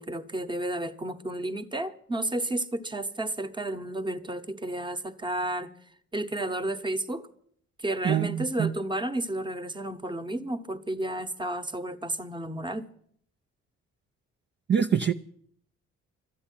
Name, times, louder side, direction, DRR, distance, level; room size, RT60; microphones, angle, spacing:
voice 1, 0.0-5.7 6.1-7.3 7.8-12.9, right 1 dB, 15° right, 1.1 m, -32 dB
voice 2, 8.0-8.7 14.7-15.1, right 8 dB, 35° right, 0.6 m, -24 dB
12.5 x 8.6 x 9.9 m
cardioid pair, 90°, 30 cm